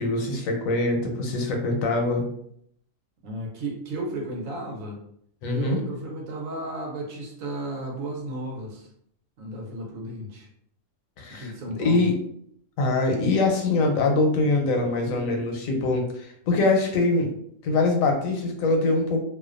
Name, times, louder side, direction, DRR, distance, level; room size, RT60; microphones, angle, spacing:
voice 1, 0.0-2.3 5.4-5.8 11.2-12.1 12.8-17.3 17.6-19.2, left 2 dB, 85° left, 2 dB, 1.0 m, -23 dB
voice 2, 3.2-5.0 5.5-8.9 9.4-10.5 11.3-12.1, right 1 dB, 85° right, 0 dB, 1.1 m, -34 dB
2.5 x 2.2 x 2.4 m, 0.68 s
omnidirectional pair, 1.4 m